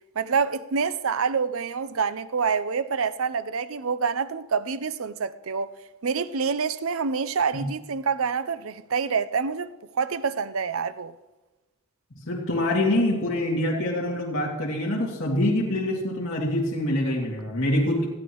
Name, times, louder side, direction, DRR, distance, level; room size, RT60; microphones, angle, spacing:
voice 1, 0.2-5.7 6.0-11.1, right 5 dB, 65° right, 0.6 m, -27 dB
voice 2, 12.1-18.1, left 1 dB, 65° left, 2.6 m, -25 dB
20.0 x 14.0 x 3.1 m
head